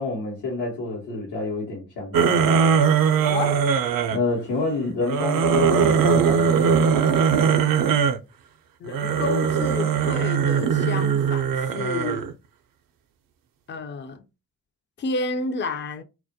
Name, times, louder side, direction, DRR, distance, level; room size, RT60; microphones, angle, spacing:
voice 1, 0.0-2.5 4.1-6.9, left 3 dB, 80° left, 0.9 m, -28 dB
sound 1, 2.1-4.2 5.0-8.2 8.9-12.3, right 6 dB, 55° right, 0.5 m, -20 dB
voice 2, 3.2-3.6 8.8-12.3 13.7-14.2 15.0-16.0, left 4 dB, 30° left, 0.4 m, -30 dB
2.2 x 2.1 x 2.7 m
hypercardioid pair, 40°, 40 cm